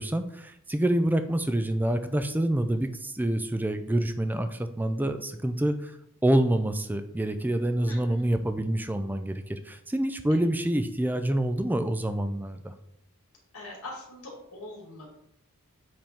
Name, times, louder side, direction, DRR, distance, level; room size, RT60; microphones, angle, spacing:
voice 1, 0.0-6.0 6.2-12.7, right 1 dB, 10° right, 9 dB, 0.4 m, -27 dB
voice 2, 7.9-8.2 10.3-10.4 13.5-15.1, left 2 dB, 75° left, -2 dB, 2.3 m, -42 dB
7.6 x 3.6 x 4.3 m, 0.77 s
head